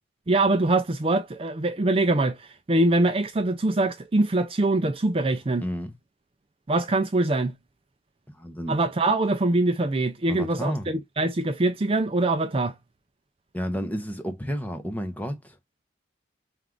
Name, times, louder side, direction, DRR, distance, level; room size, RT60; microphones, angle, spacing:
voice 1, 0.3-2.4 2.7-5.6 6.7-7.5 8.7-12.7, right 2 dB, 30° right, 0.4 m, -23 dB
voice 2, 5.6-5.9 8.4-8.7 10.3-10.9 13.5-15.5, equal, 10° left, 0.7 m, -31 dB
4.4 x 2.5 x 3.6 m
head